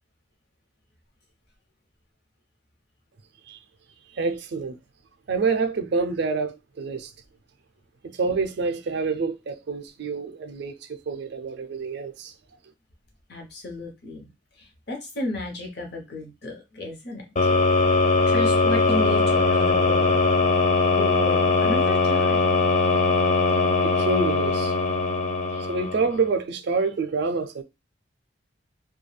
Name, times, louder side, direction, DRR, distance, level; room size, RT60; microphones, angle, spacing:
voice 1, 4.1-4.8 5.3-7.1 8.0-12.3 23.8-24.7 25.5-27.6, right 4 dB, 55° right, 0.4 m, -27 dB
voice 2, 13.3-14.3 14.6-17.5 18.3-20.2 21.0-22.6, left 2 dB, 55° left, 0.8 m, -33 dB
sound 1, 17.4-26.3, left 3 dB, 35° left, 0.4 m, -21 dB
2.3 x 2.2 x 3.1 m
head